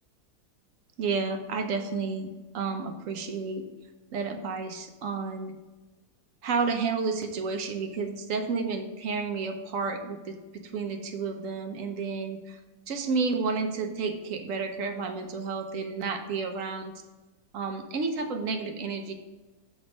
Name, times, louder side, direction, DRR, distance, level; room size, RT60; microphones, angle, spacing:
voice 1, 1.0-3.7 4.1-5.6 6.4-12.6 12.9-16.9 17.5-19.1, right 4 dB, 60° right, 6 dB, 1.1 m, -31 dB
7.2 x 3.6 x 6.4 m, 1.2 s
omnidirectional pair, 1.7 m